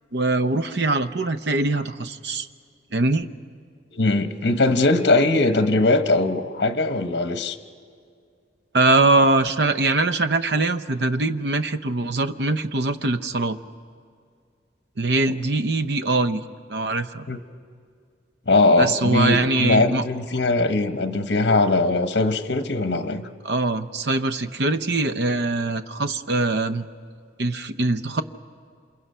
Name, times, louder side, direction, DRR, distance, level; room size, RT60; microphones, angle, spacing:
voice 1, 0.1-2.5 2.9-3.3 8.7-13.6 15.0-16.4 16.7-17.3 18.8-20.0 23.4-26.9 27.4-28.2, right 2 dB, 65° right, 11 dB, 0.8 m, -22 dB
voice 2, 3.9-7.6 17.3-17.4 18.5-23.3, left 2 dB, 65° left, 8 dB, 1.1 m, -20 dB
28.5 x 27.0 x 5.6 m, 2.2 s
head